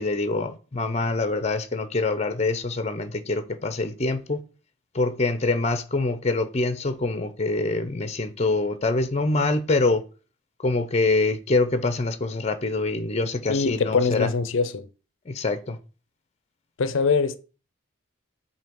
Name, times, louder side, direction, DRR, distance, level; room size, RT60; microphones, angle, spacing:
voice 1, 0.0-4.4 4.9-10.0 10.6-14.3 15.3-15.8, left 3 dB, 30° left, 0.6 m, -25 dB
voice 2, 13.5-14.9 16.8-17.4, left 4 dB, 75° left, 0.5 m, -23 dB
7.7 x 2.8 x 5.2 m
head